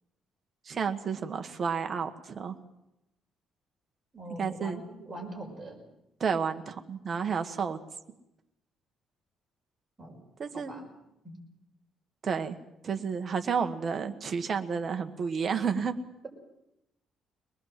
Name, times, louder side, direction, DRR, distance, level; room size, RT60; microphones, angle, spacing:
voice 1, 0.7-2.6 4.4-4.8 6.2-7.8 10.4-10.7 12.2-12.6 12.8-15.9, right 6 dB, 30° right, 6 dB, 1.4 m, -31 dB
voice 2, 4.1-5.8 10.0-10.2 10.7-10.9 11.2-11.4, right 1 dB, 10° right, -1 dB, 5.6 m, -42 dB
23.5 x 20.0 x 7.6 m, 0.88 s
cardioid pair, 175°, 0 cm